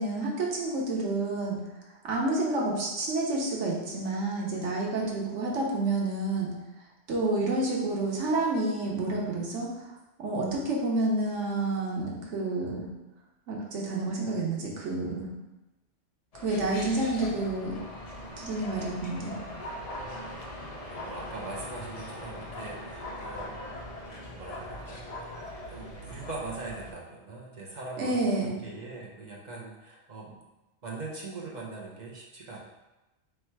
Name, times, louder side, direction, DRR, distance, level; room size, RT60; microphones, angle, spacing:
voice 1, 0.0-1.6 2.1-6.5 7.1-9.7 10.2-12.9 13.5-15.3 16.4-17.8 18.4-19.4 28.0-28.5, right 2 dB, 90° right, -2 dB, 1.2 m, -29 dB
sound 1, 16.3-26.9, left 1 dB, 45° left, 0.5 m, -40 dB
voice 2, 20.0-20.4 20.9-23.6 24.4-25.3 25.7-30.4 30.8-32.6, right 3 dB, 45° right, -3 dB, 0.8 m, -41 dB
3.3 x 3.2 x 4.5 m, 1.0 s
omnidirectional pair, 1.2 m